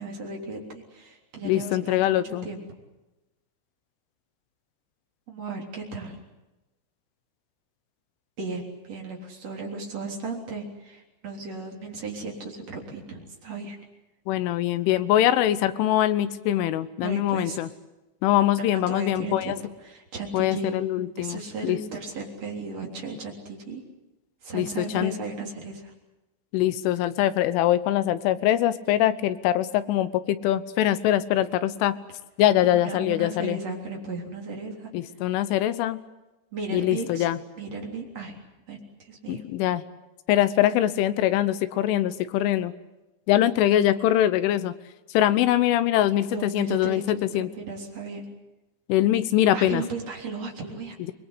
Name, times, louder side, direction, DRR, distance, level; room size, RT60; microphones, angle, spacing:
voice 1, 0.0-2.6 5.3-6.2 8.4-13.8 17.0-17.6 18.6-19.6 19.8-20.8 21.2-23.8 24.4-25.9 32.6-34.9 36.5-37.3 37.6-38.4 38.7-39.4 46.3-48.2 49.5-51.0, right 3 dB, 35° right, 0 dB, 4.0 m, -35 dB
voice 2, 1.4-2.5 14.3-17.7 18.2-19.6 20.3-21.8 24.5-25.1 26.5-32.0 32.4-33.6 34.9-36.0 36.7-37.4 39.3-39.8 40.3-42.7 43.3-44.7 45.1-47.5 48.9-49.8, left 13 dB, 75° left, 13 dB, 3.2 m, -23 dB
26.5 x 21.5 x 8.2 m, 1.1 s
omnidirectional pair, 6.0 m